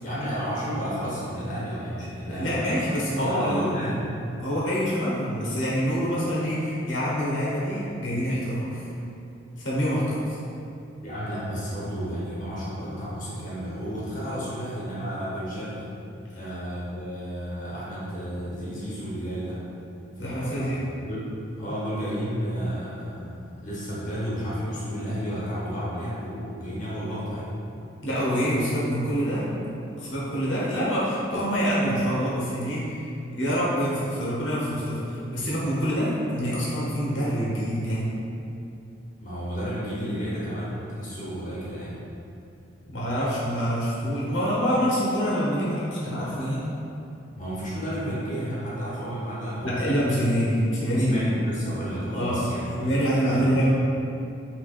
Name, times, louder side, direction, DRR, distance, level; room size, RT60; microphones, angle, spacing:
voice 1, 0.0-2.8 3.1-4.1 11.0-15.8 16.3-19.6 20.2-20.7 21.1-21.3 21.6-27.5 39.2-42.0 47.4-49.8 51.0-53.5, equal, 45° left, -9 dB, 0.8 m, -32 dB
voice 2, 2.3-3.7 4.4-8.9 9.6-10.4 20.2-20.9 28.0-29.5 30.0-38.1 42.9-46.7 49.6-51.3 52.1-52.5 52.8-53.7, equal, 85° left, -8 dB, 0.9 m, -26 dB
3.3 x 2.8 x 2.4 m, 2.7 s
head